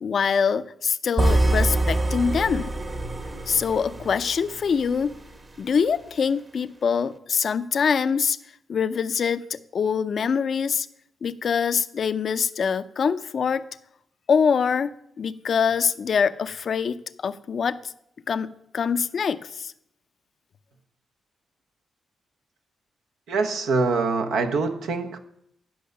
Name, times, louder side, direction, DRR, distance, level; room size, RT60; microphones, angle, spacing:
voice 1, 0.0-2.7 3.5-5.1 5.6-8.4 8.7-10.9 11.2-13.6 14.3-17.9 18.3-19.7, left 6 dB, 60° left, 0.5 m, -24 dB
sound 1, 1.2-5.3, right 2 dB, 35° right, 1.2 m, -25 dB
voice 2, 23.3-25.2, right 4 dB, 85° right, 0.9 m, -24 dB
10.5 x 5.5 x 6.5 m
cardioid pair, 60°, 0 cm